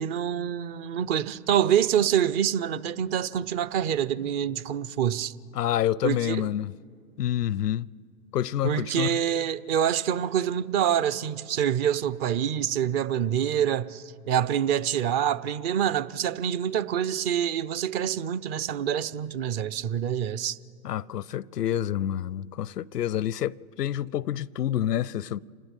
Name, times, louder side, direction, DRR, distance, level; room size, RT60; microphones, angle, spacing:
voice 1, 0.0-5.3 6.0-6.5 8.6-20.6, right 9 dB, 40° right, 0.8 m, -26 dB
voice 2, 5.5-6.7 7.2-7.9 8.3-9.2 20.8-25.4, left 11 dB, 85° left, 0.6 m, -28 dB
27.0 x 20.0 x 8.2 m
hypercardioid pair, 100°, 46 cm